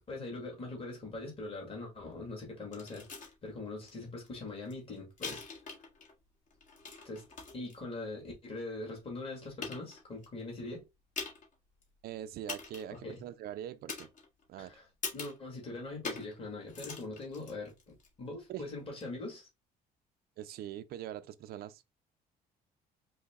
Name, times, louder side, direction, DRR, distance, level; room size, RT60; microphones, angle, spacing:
voice 1, 0.1-3.1 3.4-5.5 7.0-7.3 7.5-10.8 12.9-13.2 14.6-14.9 15.1-19.5, left 2 dB, 35° left, 1.9 m, -42 dB
sound 1, 2.7-3.3 3.9-4.0 4.2-6.1 6.5-7.7 8.4-8.5 9.2-9.3 9.6-10.3 11.2-11.5 11.8-11.9 12.5-13.0 13.9-14.5 15.0-15.4 16.0-16.4 16.6-18.1 18.9-19.0, left 4 dB, 50° left, 1.7 m, -42 dB
voice 2, 12.0-14.1 14.5-14.7 18.5-18.6 20.4-22.0, right 11 dB, 65° right, 0.5 m, -43 dB
4.7 x 2.2 x 3.5 m
cardioid pair, 110°, 17 cm